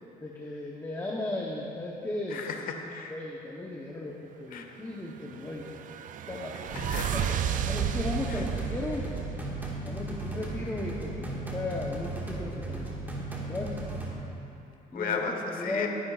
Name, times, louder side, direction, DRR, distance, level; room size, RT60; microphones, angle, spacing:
voice 1, 0.2-2.4 3.1-5.7 6.3-6.6 7.1-7.4 7.6-9.1 9.8-12.9 13.4-13.8 14.9-15.9, left 2 dB, 15° left, -2 dB, 1.0 m, -36 dB
voice 2, 2.3-3.2 4.5-4.7 6.7-7.2 8.3-8.4 14.9-15.3 15.6-15.9, left 6 dB, 55° left, 4 dB, 1.3 m, -34 dB
sound 1, 5.2-10.1, right 10 dB, 50° right, 0.4 m, -33 dB
sound 2, 6.7-14.1, right 2 dB, 10° right, 1.8 m, -36 dB
18.0 x 10.5 x 2.5 m, 2.8 s
cardioid pair, 110°, 17 cm